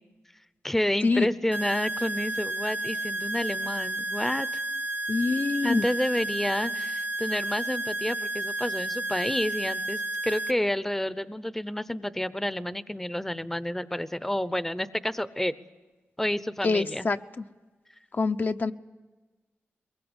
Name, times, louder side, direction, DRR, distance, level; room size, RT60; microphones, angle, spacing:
voice 1, 0.6-4.6 5.6-15.5 16.2-17.1, left 1 dB, 5° left, 15 dB, 0.8 m, -30 dB
sound 1, 1.5-10.5, right 1 dB, 35° right, 0.9 m, -32 dB
voice 2, 5.1-5.9 16.6-17.2 18.1-18.7, left 4 dB, 45° left, 7 dB, 0.8 m, -25 dB
22.5 x 21.5 x 8.1 m, 1.2 s
cardioid pair, 65°, 5 cm